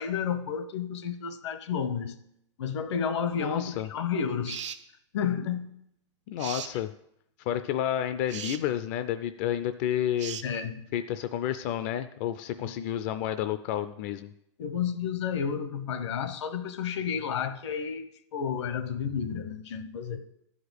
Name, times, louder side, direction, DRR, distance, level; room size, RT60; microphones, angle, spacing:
voice 1, 0.0-2.2 2.6-4.7 5.1-5.8 10.4-10.9 12.6-12.7 14.6-20.3, left 7 dB, 70° left, 1.0 m, -31 dB
voice 2, 3.3-3.9 6.3-6.9 7.5-10.4 10.9-14.3, left 11 dB, 35° left, 0.4 m, -30 dB
sound 1, 4.4-4.8 6.4-6.7 8.3-8.6 10.2-10.5, right 9 dB, 85° right, 0.8 m, -37 dB
11.5 x 5.0 x 8.0 m
supercardioid pair, 155°, 15 cm